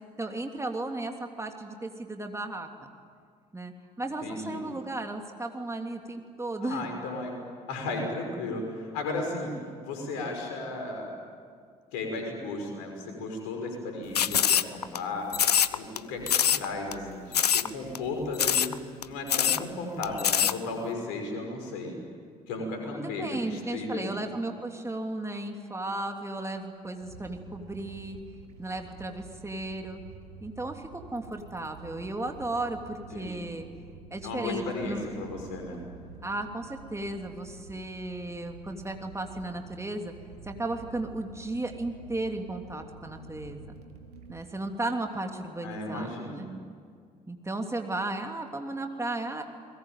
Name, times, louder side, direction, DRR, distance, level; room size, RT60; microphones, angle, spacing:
voice 1, 0.2-2.7 3.5-6.9 22.9-28.2 28.6-30.0 30.4-33.7 34.1-35.1 36.2-40.1 40.4-43.8 44.3-46.4 47.3-49.4, right 2 dB, 15° right, 4 dB, 3.0 m, -35 dB
voice 2, 4.2-4.6 6.6-7.4 7.7-9.5 9.8-11.1 11.9-15.3 15.7-18.7 19.0-21.9 22.5-24.3 33.1-33.5 34.2-35.8 45.6-46.4, left 2 dB, 70° left, 3 dB, 6.1 m, -35 dB
sound 1, 14.1-15.0 15.3-16.0 16.3-16.6 16.9-17.0 17.3-17.7 17.9-18.0 18.3-18.7 19.0-19.1 19.3-19.6 20.0-20.5, left 9 dB, 85° left, 0.6 m, -24 dB
sound 2, 27.0-44.4, right 5 dB, 80° right, 1.6 m, -49 dB
30.0 x 21.5 x 9.2 m, 2.1 s
figure-of-eight pair, 50°, 20 cm